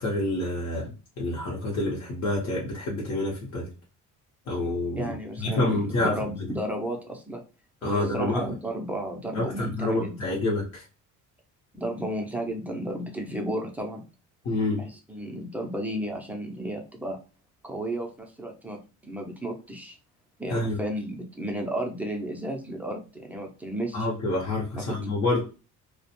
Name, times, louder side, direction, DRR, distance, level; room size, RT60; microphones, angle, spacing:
voice 1, 0.0-3.7 4.5-5.1 5.4-6.5 7.8-8.5 9.3-10.8 14.4-14.8 20.5-20.8 23.9-25.4, left 2 dB, 50° left, -4 dB, 0.8 m, -28 dB
voice 2, 5.0-7.4 7.9-10.4 11.7-14.0 14.8-17.2 17.6-20.0 20.4-24.1 24.7-25.1, right 1 dB, 5° right, 1 dB, 0.4 m, -33 dB
2.4 x 2.1 x 2.8 m, 0.33 s
cardioid pair, 130°, 32 cm